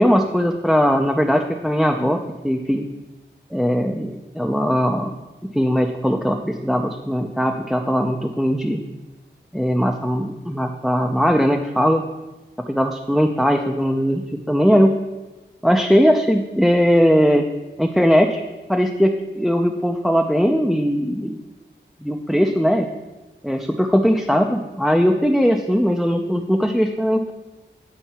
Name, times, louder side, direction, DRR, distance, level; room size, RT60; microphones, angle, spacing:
voice 1, 0.0-2.8 3.5-5.2 5.5-8.8 9.5-12.0 12.7-15.0 15.6-17.4 17.8-18.4 18.7-21.4 22.0-22.9 23.4-27.3, equal, ahead, 3 dB, 0.4 m, -19 dB
9.0 x 4.4 x 2.8 m, 1.1 s
cardioid pair, 50°, 20 cm